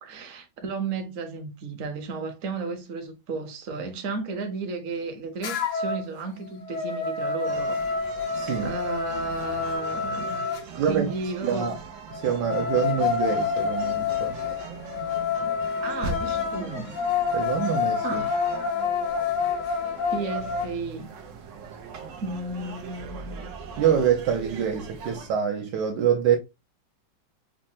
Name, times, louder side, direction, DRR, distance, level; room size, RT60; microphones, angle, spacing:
voice 1, 0.0-7.8 8.6-11.7 15.8-16.9 18.0-18.4 20.1-21.1 22.2-23.5, right 4 dB, 55° right, 0.9 m, -33 dB
sound 1, 5.4-6.1 6.5-10.7 12.1-20.7, left 6 dB, 80° left, 1.4 m, -28 dB
sound 2, 7.4-25.3, right 5 dB, 90° right, 0.6 m, -40 dB
voice 2, 8.4-8.7 10.8-11.1 11.4-11.8 12.2-14.4 17.3-18.2 23.8-26.4, right 8 dB, 70° right, 1.1 m, -25 dB
5.2 x 2.1 x 2.6 m
omnidirectional pair, 2.1 m